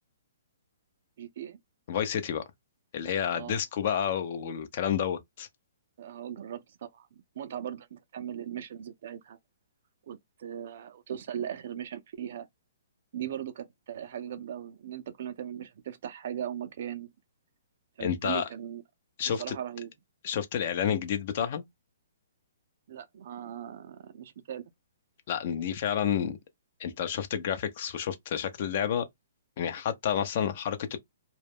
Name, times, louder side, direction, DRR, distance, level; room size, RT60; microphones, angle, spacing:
voice 1, 1.2-1.6 3.2-3.6 6.0-9.4 10.1-12.5 13.1-17.1 18.0-18.8 19.3-19.9 22.9-24.6, right 10 dB, 55° right, 0.5 m, -39 dB
voice 2, 1.9-2.4 2.9-5.5 18.0-18.4 19.2-19.5 20.2-21.6 25.3-26.4 26.8-29.1 29.6-31.0, left 9 dB, 50° left, 0.6 m, -30 dB
2.3 x 2.1 x 3.4 m
hypercardioid pair, 140°, 0 cm